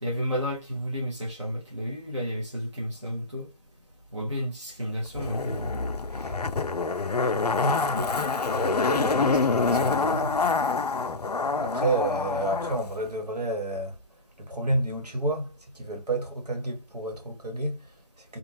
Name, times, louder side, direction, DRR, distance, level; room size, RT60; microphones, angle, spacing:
voice 1, 0.0-3.5 4.1-5.7, equal, 50° right, 0.8 m, -32 dB
Zipper (clothing), 5.1-12.8 13.1-13.2, left 4 dB, 90° left, 0.4 m, -26 dB
voice 2, 7.1-10.4 11.6-14.0 14.4-18.4, right 2 dB, 80° right, 1.3 m, -31 dB
2.5 x 2.3 x 3.0 m
figure-of-eight pair, 175°, 20 cm